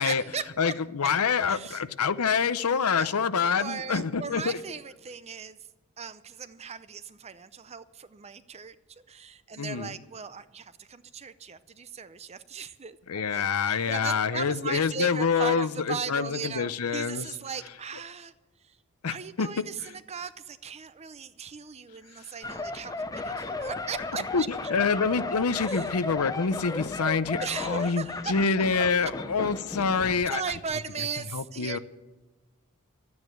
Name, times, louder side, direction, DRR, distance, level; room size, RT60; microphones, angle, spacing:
voice 1, 0.0-0.7 1.5-1.8 2.9-3.2 3.6-5.6 6.0-18.3 18.6-18.8 19.1-24.5 25.6-25.9 27.4-28.6 29.0-29.1 30.3-31.8, right 6 dB, 30° right, 14 dB, 0.6 m, -37 dB
voice 2, 0.6-4.6 9.6-9.9 13.1-17.3 19.0-19.5 24.3-24.4 24.7-30.4 31.3-31.8, left 5 dB, 90° left, 13 dB, 0.7 m, -26 dB
sound 1, 22.4-30.2 30.5-30.7, left 2 dB, 15° left, 0.7 m, -35 dB
12.5 x 9.6 x 9.0 m, 1.1 s
head